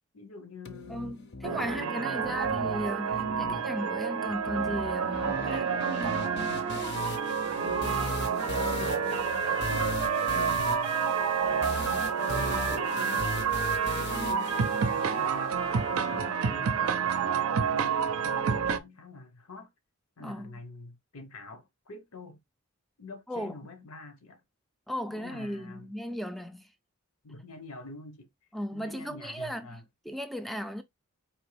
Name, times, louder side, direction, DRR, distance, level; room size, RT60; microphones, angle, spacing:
voice 1, 0.1-1.2 1.6-2.5 7.6-11.0 11.5-12.9 13.8-19.7 20.2-22.4 23.0-24.4 25.1-25.9 27.2-28.3 28.7-29.8, left 3 dB, 90° left, 1.0 m, -47 dB
sound 1, 0.6-15.6, left 3 dB, 50° left, 0.6 m, -39 dB
voice 2, 0.9-6.3 20.2-20.6 23.3-23.6 24.9-26.7 28.5-30.8, equal, ahead, 0.3 m, -36 dB
sound 2, 1.4-18.8, right 6 dB, 80° right, 0.5 m, -29 dB
Trumpet, 5.2-11.7 12.2-17.5, right 4 dB, 25° right, 0.7 m, -36 dB
4.3 x 2.9 x 3.3 m
head